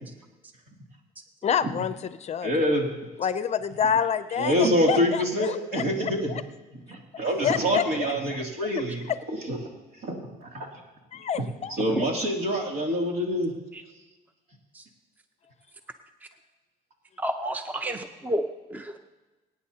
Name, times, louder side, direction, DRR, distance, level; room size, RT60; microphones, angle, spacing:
voice 1, 1.4-2.7 3.2-6.4 7.2-8.1 8.6-8.7 9.1-9.2 11.1-11.7, left 7 dB, 40° left, 13 dB, 0.6 m, -28 dB
voice 2, 2.4-2.9 4.4-6.3 6.9-9.1 9.5-9.6 10.0-10.7 11.8-13.5, equal, 65° right, 0 dB, 2.8 m, -26 dB
voice 3, 17.2-19.0, right 1 dB, 10° right, 7 dB, 0.7 m, -31 dB
24.0 x 9.4 x 2.9 m, 1.2 s
cardioid pair, 110°, 17 cm